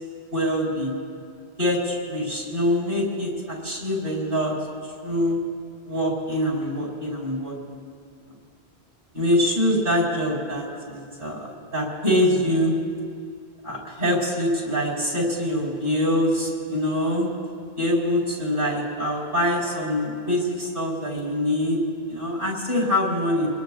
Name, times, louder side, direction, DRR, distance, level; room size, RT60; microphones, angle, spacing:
voice 1, 0.3-0.9 1.6-4.5 4.8-5.4 5.8-7.5 9.1-12.7 13.6-17.3 17.8-21.8 22.1-23.5, left 1 dB, 55° right, -3 dB, 5.2 m, -24 dB
26.5 x 21.0 x 2.6 m, 2.2 s
omnidirectional pair, 1.1 m